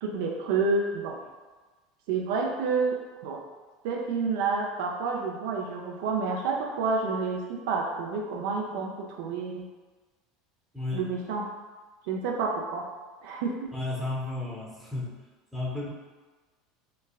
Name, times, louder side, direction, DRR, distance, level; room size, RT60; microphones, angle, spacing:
voice 1, 0.0-1.2 2.1-3.0 3.2-3.4 3.8-9.7 10.9-11.5 12.1-12.8 13.2-13.7, right 4 dB, 75° right, 0 dB, 0.3 m, -29 dB
voice 2, 10.7-11.1 13.7-15.1 15.5-15.9, left 2 dB, ahead, -4 dB, 0.7 m, -33 dB
3.0 x 2.3 x 2.3 m, 1.3 s
supercardioid pair, 100°, 0 cm